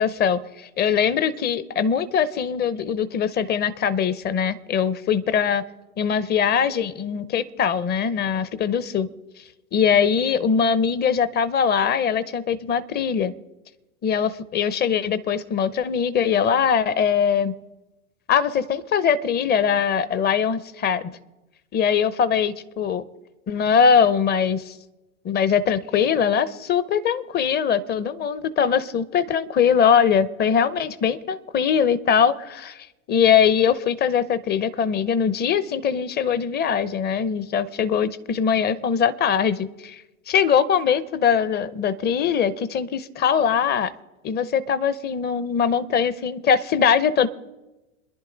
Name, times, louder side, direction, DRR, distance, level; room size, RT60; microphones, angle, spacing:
voice 1, 0.0-5.6 6.0-9.1 9.7-13.3 14.0-17.5 18.3-21.1 21.7-23.0 23.5-24.7 25.2-43.9 44.2-47.3, left 7 dB, 25° left, 16 dB, 0.7 m, -21 dB
27.0 x 11.0 x 3.9 m, 1.1 s
hypercardioid pair, 95°, 42 cm